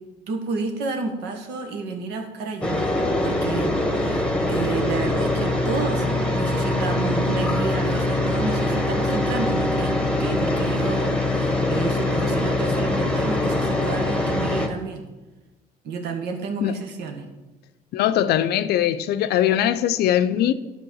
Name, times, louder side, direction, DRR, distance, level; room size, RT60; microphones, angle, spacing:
voice 1, 0.3-2.9 3.2-9.9 10.2-15.0 15.8-17.2, right 4 dB, 80° right, 1.5 m, -30 dB
sound 1, 2.6-14.7, left 2 dB, 5° left, 1.2 m, -23 dB
voice 2, 17.9-20.5, left 11 dB, 75° left, 0.5 m, -21 dB
10.5 x 4.5 x 6.4 m
cardioid pair, 110°, 17 cm